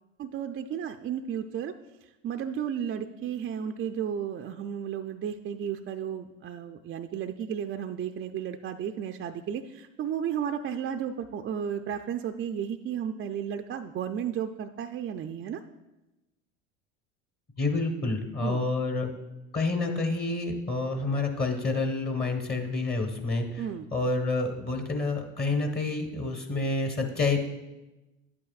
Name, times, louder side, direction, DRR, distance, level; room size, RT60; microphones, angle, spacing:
voice 1, 0.2-1.7 2.0-15.6 18.4-18.6 23.6-23.9, right 8 dB, 35° right, 6 dB, 0.5 m, -33 dB
voice 2, 17.6-19.1 19.5-23.6 23.9-27.4, left 3 dB, 30° left, 3 dB, 1.3 m, -28 dB
10.5 x 8.6 x 2.4 m, 1.0 s
hypercardioid pair, 75°, 34 cm